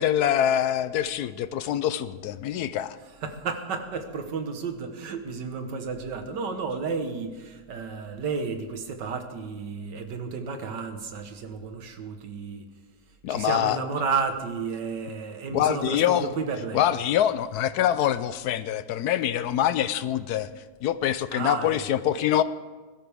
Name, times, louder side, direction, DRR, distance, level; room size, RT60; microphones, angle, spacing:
voice 1, 0.0-3.0 13.2-13.8 15.5-16.3 16.7-20.5 20.8-22.4, left 11 dB, 75° left, 14 dB, 1.0 m, -25 dB
voice 2, 3.2-12.6 13.3-16.9 21.3-21.9, right 5 dB, 90° right, 7 dB, 1.8 m, -32 dB
21.0 x 12.5 x 3.5 m, 1.3 s
omnidirectional pair, 1.8 m